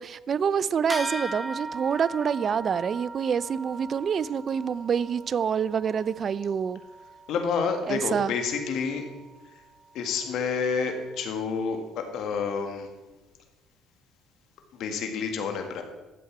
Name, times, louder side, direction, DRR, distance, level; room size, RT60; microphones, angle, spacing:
voice 1, 0.0-6.8 7.9-8.3, right 7 dB, 45° right, 19 dB, 0.3 m, -27 dB
sound 1, 0.9-10.7, right 2 dB, 5° right, 1.3 m, -40 dB
voice 2, 7.3-9.0 9.9-12.9 14.7-15.8, left 5 dB, 70° left, 5 dB, 1.7 m, -29 dB
12.5 x 7.8 x 4.6 m, 1.1 s
cardioid pair, 95°, 0 cm